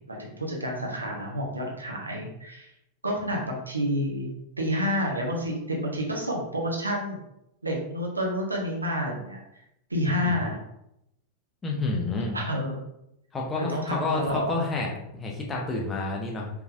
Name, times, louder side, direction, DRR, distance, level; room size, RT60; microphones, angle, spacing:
voice 1, 0.0-2.7 3.0-4.3 4.6-7.2 7.6-9.4 9.9-10.6 12.3-12.8 13.5-14.5, equal, 80° right, -1 dB, 0.8 m, -29 dB
voice 2, 11.6-12.4 13.3-16.5, left 3 dB, 20° left, -2 dB, 0.9 m, -29 dB
4.7 x 3.4 x 2.5 m, 0.81 s
figure-of-eight pair, 90°, 0 cm